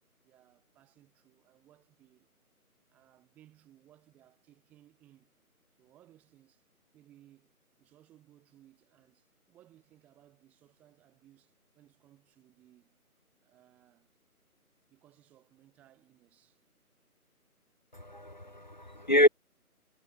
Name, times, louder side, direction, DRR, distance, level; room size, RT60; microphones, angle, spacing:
voice 1, 0.2-2.3 2.9-5.3 5.8-6.6 6.9-13.0 13.4-14.1 14.9-16.6, right 13 dB, 5° right, 1.6 m, -62 dB
voice 2, 18.0-19.3, left 1 dB, 30° left, 0.6 m, -26 dB
figure-of-eight pair, 160°, 45 cm